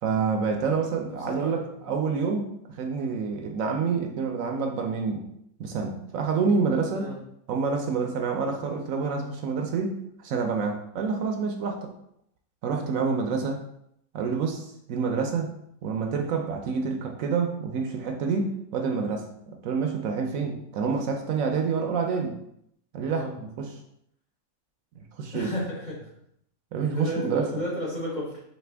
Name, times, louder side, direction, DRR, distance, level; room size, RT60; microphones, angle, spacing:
voice 1, 0.0-5.3 5.6-7.1 7.5-11.9 12.6-13.6 14.1-15.5 15.8-19.3 19.6-22.4 22.9-23.8 25.0-25.5 26.7-27.4, right 5 dB, 70° right, 3 dB, 0.9 m, -28 dB
voice 2, 1.0-1.9 6.9-7.2 23.1-23.3 25.3-26.0 26.8-28.5, left 1 dB, 40° left, -5 dB, 0.8 m, -33 dB
4.2 x 2.6 x 3.3 m, 0.74 s
omnidirectional pair, 1.5 m